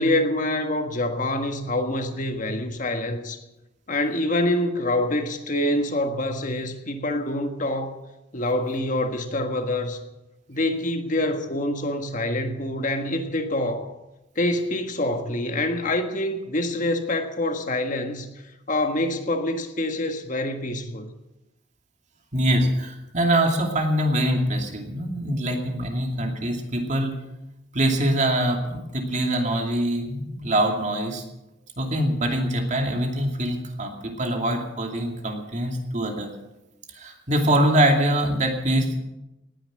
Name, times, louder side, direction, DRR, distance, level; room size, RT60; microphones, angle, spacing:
voice 1, 0.0-3.4 3.9-8.0 8.3-10.0 10.5-13.9 14.3-18.3 18.7-21.1, left 1 dB, 45° left, 1.6 m, -26 dB
voice 2, 22.3-27.2 27.7-31.2 31.8-36.3 36.9-39.0, right 1 dB, 40° right, 2.6 m, -24 dB
18.5 x 10.0 x 7.7 m
head